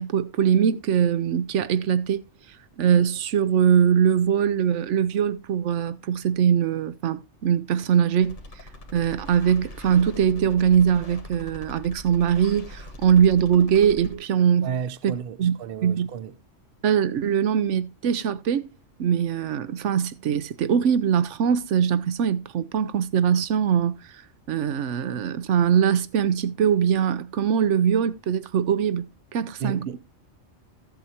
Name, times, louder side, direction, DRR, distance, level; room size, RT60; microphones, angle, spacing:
voice 1, 0.0-2.2 2.8-8.4 8.9-14.7 15.4-15.5 15.8-16.1 16.8-18.7 19.0-23.9 24.5-29.0 29.3-30.0, right 8 dB, 85° right, 1.0 m, -22 dB
sound 1, 8.2-14.1, left 1 dB, 80° left, 1.7 m, -42 dB
voice 2, 14.6-16.3 29.6-30.0, right 7 dB, 55° right, 0.8 m, -32 dB
14.5 x 7.7 x 2.8 m
omnidirectional pair, 1.2 m